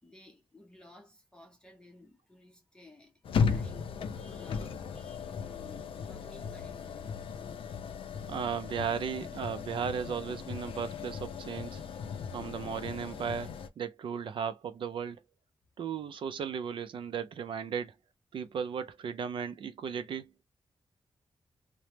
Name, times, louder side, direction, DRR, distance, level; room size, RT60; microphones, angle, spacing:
voice 1, 0.0-7.2, left 2 dB, 10° left, 0.6 m, -56 dB
sound 1, 3.2-13.7, left 6 dB, 75° left, 0.4 m, -36 dB
voice 2, 8.3-11.8 12.3-15.2 15.8-17.9 18.3-20.3, right 7 dB, 65° right, 0.4 m, -36 dB
3.3 x 2.0 x 2.8 m
wide cardioid pair, 180°, 9 cm